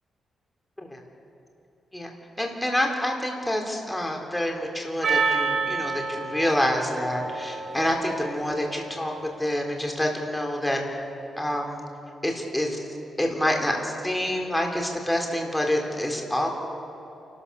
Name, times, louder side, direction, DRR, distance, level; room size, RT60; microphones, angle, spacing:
voice 1, 2.4-9.1 9.4-10.8 11.4-11.9 12.2-12.8 13.2-16.5, left 1 dB, 10° left, 1 dB, 3.9 m, -27 dB
Percussion, 5.0-9.6, right 4 dB, 50° right, 5.2 m, -30 dB
28.5 x 13.0 x 7.1 m, 2.9 s
cardioid pair, 75°, 0 cm